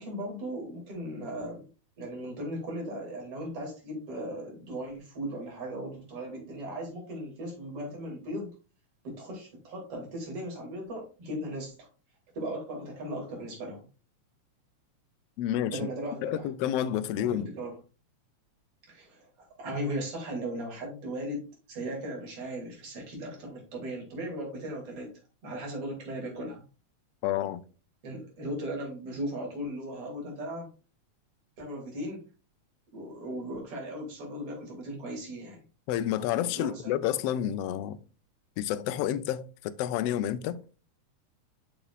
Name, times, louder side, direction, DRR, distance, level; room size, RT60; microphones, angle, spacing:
voice 1, 0.0-1.6 2.0-8.5 9.0-11.8 12.4-13.8 15.7-16.5 17.2-17.8 18.9-25.1 25.4-26.6 28.0-30.7 31.6-32.2 32.9-35.6 36.5-36.9, right 1 dB, 50° right, 3.5 m, -37 dB
voice 2, 15.4-15.8 16.2-17.5 27.2-27.6 35.9-38.0 38.6-40.6, left 11 dB, 80° left, 1.4 m, -29 dB
8.6 x 6.0 x 2.4 m
omnidirectional pair, 3.4 m